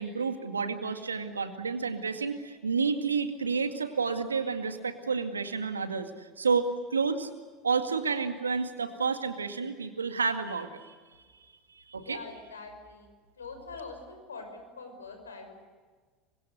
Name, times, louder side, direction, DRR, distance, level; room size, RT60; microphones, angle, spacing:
voice 1, 0.0-7.3 7.6-11.0 11.8-12.2, right 5 dB, 85° right, 8 dB, 2.1 m, -30 dB
voice 2, 12.0-15.6, left 4 dB, 85° left, 6 dB, 5.9 m, -44 dB
29.5 x 24.5 x 6.7 m, 1.5 s
figure-of-eight pair, 70°, 0 cm